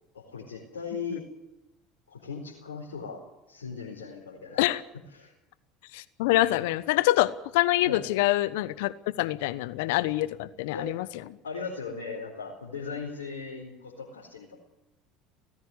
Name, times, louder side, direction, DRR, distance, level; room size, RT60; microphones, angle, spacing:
voice 1, 0.1-1.2 2.1-3.2 3.5-4.6 5.1-5.3 7.8-8.0 10.7-10.9 11.4-14.6, left 5 dB, 90° left, -3 dB, 4.6 m, -38 dB
voice 2, 5.9-11.1, left 17 dB, 70° left, 17 dB, 1.1 m, -25 dB
18.5 x 15.5 x 9.9 m, 0.93 s
hypercardioid pair, 75°, 0 cm